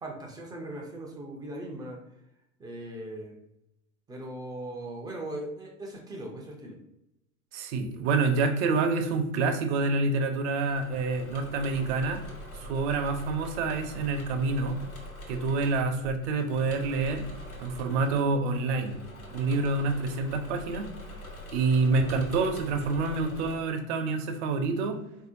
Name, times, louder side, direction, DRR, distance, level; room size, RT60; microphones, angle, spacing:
voice 1, 0.0-2.0 2.6-3.4 4.1-6.8, right 1 dB, 10° right, 0 dB, 0.3 m, -39 dB
voice 2, 7.5-12.2 12.6-14.8 15.3-17.2 17.6-19.0 19.3-20.9 21.5-25.0, right 3 dB, 50° right, 7 dB, 0.6 m, -27 dB
Engine / Mechanisms, 10.7-23.5, equal, 85° left, 1.1 m, -44 dB
4.1 x 2.7 x 2.6 m, 0.84 s
figure-of-eight pair, 85°, 42 cm